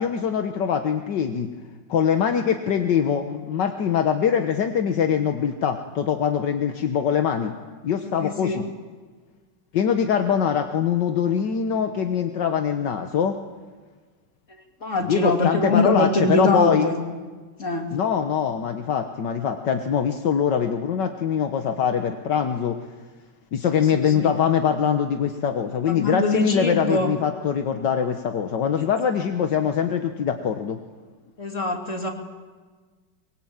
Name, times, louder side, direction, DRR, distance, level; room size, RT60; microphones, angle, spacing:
voice 1, 0.0-1.5 1.9-7.5 7.8-8.6 9.7-13.4 15.0-16.9 17.9-22.8 23.5-30.8, left 7 dB, 70° left, 7 dB, 1.8 m, -23 dB
voice 2, 8.0-8.6 14.8-17.0 17.6-17.9 23.7-24.3 25.8-27.1 31.4-32.1, left 2 dB, 40° left, 4 dB, 3.3 m, -24 dB
23.5 x 22.5 x 8.8 m, 1.4 s
omnidirectional pair, 2.0 m